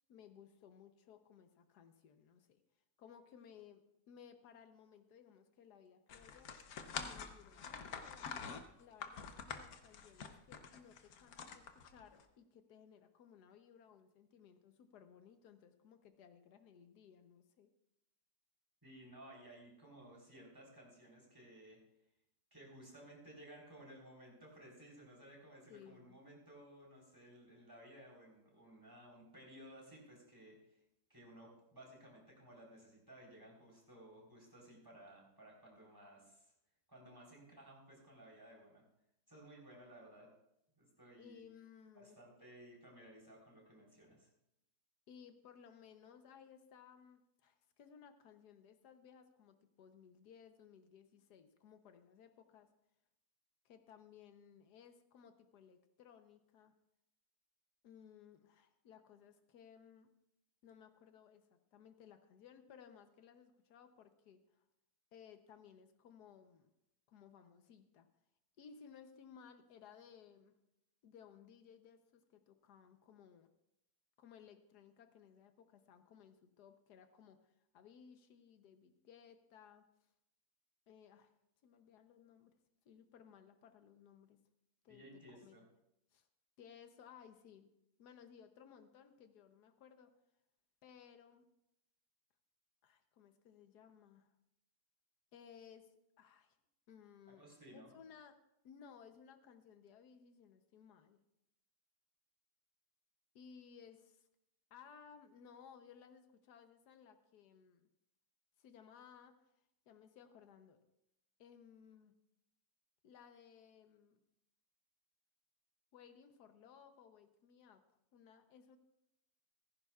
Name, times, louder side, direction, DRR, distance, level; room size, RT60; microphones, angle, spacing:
voice 1, 0.0-2.6 3.0-6.5 7.0-17.7 25.7-26.2 41.2-42.2 45.1-52.7 53.6-56.7 57.8-60.1 60.6-64.6 65.1-66.7 67.1-68.1 68.6-70.5 71.0-73.5 74.2-79.8 80.9-81.3 81.6-82.5 82.8-84.4 84.8-85.6 86.1-86.3 86.6-87.7 88.0-90.1 90.8-91.4 92.8-94.3 95.3-95.9 96.2-96.6 96.9-97.4 97.7-98.3 98.6-101.2 103.3-104.3 104.7-107.9 108.6-109.3 109.9-110.8 111.4-112.1 113.0-114.2 115.9-117.8 118.1-118.8, left 7 dB, 90° left, 8 dB, 1.4 m, -60 dB
sound 1, 6.1-12.2, left 6 dB, 70° left, 1.4 m, -47 dB
voice 2, 18.8-21.8 22.5-30.8 31.1-36.5 36.9-38.8 39.3-40.3 40.8-41.4 41.9-44.3 84.9-85.6 97.4-97.9, right 1 dB, 15° right, -2 dB, 3.8 m, -57 dB
15.5 x 15.0 x 2.4 m, 0.83 s
omnidirectional pair, 1.7 m